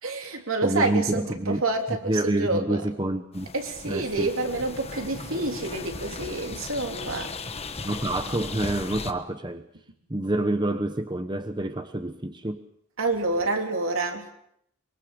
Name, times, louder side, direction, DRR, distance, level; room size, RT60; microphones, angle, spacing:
voice 1, 0.0-2.8 3.5-7.3 13.0-14.3, right 2 dB, 70° right, 3 dB, 3.4 m, -28 dB
voice 2, 0.6-1.6 1.9-3.5 3.8-4.3 7.8-9.7 10.1-12.7, right 1 dB, 20° right, 8 dB, 1.0 m, -28 dB
sound 1, 3.3-9.1, left 3 dB, 30° left, 1.3 m, -37 dB
24.0 x 23.5 x 6.9 m, 0.71 s
head